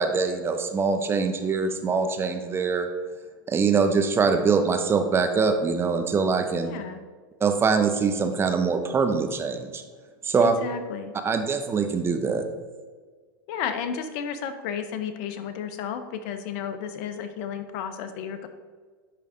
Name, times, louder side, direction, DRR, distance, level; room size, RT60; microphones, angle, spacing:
voice 1, 0.0-2.9 3.5-6.7 7.4-9.8 10.2-10.5 11.2-12.4, right 5 dB, 20° right, 6 dB, 0.7 m, -23 dB
voice 2, 6.6-7.0 10.4-11.1 13.5-18.5, left 7 dB, 50° left, 9 dB, 0.8 m, -33 dB
10.0 x 3.4 x 3.7 m, 1.5 s
hypercardioid pair, 105°, 12 cm